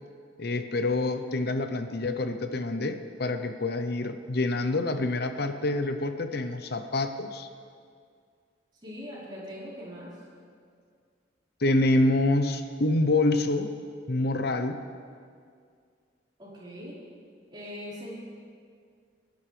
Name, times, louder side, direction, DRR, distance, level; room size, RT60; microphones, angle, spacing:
voice 1, 0.4-7.5 11.6-13.7 14.1-14.8, left 2 dB, 60° left, 8 dB, 0.7 m, -26 dB
voice 2, 8.8-10.1 16.4-17.0 17.5-18.1, equal, 25° right, -8 dB, 4.5 m, -41 dB
28.0 x 10.5 x 3.3 m, 2.2 s
head